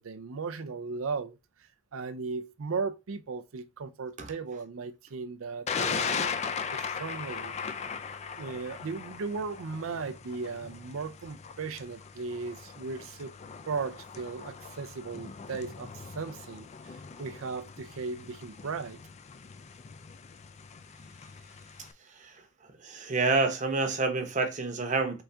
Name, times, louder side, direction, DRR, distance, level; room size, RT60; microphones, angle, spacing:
voice 1, 0.0-1.4 1.9-7.5 8.4-13.3 13.7-19.0, right 4 dB, 90° right, 0.5 m, -37 dB
Thunder, 5.7-21.9, left 6 dB, 35° left, 0.3 m, -39 dB
voice 2, 22.8-25.2, right 3 dB, 35° right, 0.9 m, -28 dB
4.0 x 3.6 x 3.4 m
head